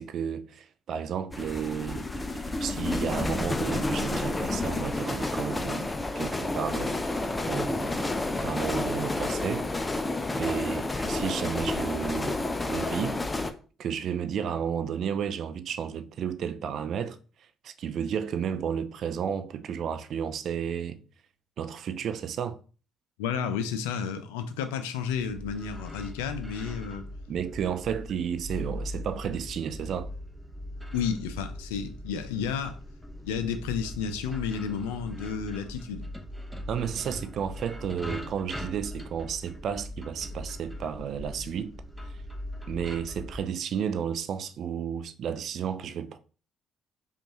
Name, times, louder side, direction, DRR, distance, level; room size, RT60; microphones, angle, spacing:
voice 1, 0.0-9.8 10.4-13.5 13.8-17.2 17.6-21.0 21.6-22.6 27.3-30.1 36.7-41.7 42.7-46.2, right 8 dB, 60° right, 0.4 m, -32 dB
sound 1, 1.3-13.5, left 2 dB, 20° left, 0.5 m, -30 dB
voice 2, 23.2-27.1 30.9-32.8 33.2-36.0, left 7 dB, 80° left, 0.4 m, -32 dB
sound 2, 25.1-43.4, left 1 dB, 5° right, 0.8 m, -40 dB
5.1 x 2.4 x 3.0 m
hypercardioid pair, 50°, 0 cm